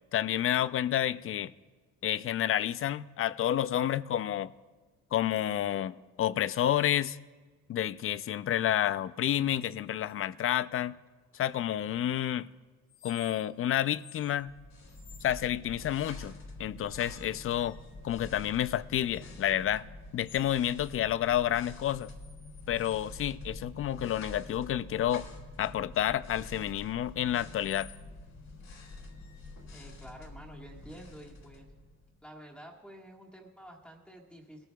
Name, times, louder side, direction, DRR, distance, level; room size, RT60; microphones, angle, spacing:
voice 1, 0.1-1.5 2.0-4.5 5.1-7.2 7.7-11.0 11.3-12.5 13.0-14.5 15.2-16.3 16.6-17.8 18.0-19.9 20.1-22.1 22.7-25.3 25.6-27.9, left 11 dB, 45° left, 0.4 m, -30 dB
sound 1, 12.9-13.6 14.0-14.3 14.9-15.4 15.9-16.4 16.8-18.1 19.1-19.4 20.2-21.0 21.3-23.1 23.7-28.1 28.7-29.9, left 9 dB, 85° left, 2.4 m, -57 dB
sound 2, 14.4-32.2, left 2 dB, 60° left, 2.5 m, -47 dB
voice 2, 29.7-31.7 32.2-34.7, right 1 dB, 5° left, 1.6 m, -50 dB
20.5 x 14.0 x 2.3 m
cardioid pair, 90°, 30 cm